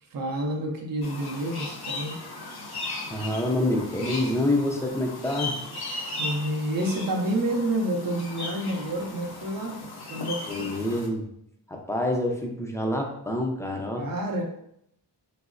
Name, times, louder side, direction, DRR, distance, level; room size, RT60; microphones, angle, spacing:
voice 1, 0.1-2.1 6.2-9.8 10.1-10.5 14.0-14.4, right 1 dB, 50° right, 2 dB, 0.6 m, -28 dB
sound 1, 1.0-11.1, left 2 dB, 60° left, 0.6 m, -37 dB
voice 2, 3.1-5.6 10.5-11.3 11.7-14.1, left 1 dB, 5° left, 0 dB, 0.4 m, -27 dB
3.5 x 2.0 x 2.4 m, 0.74 s
wide cardioid pair, 70°, 44 cm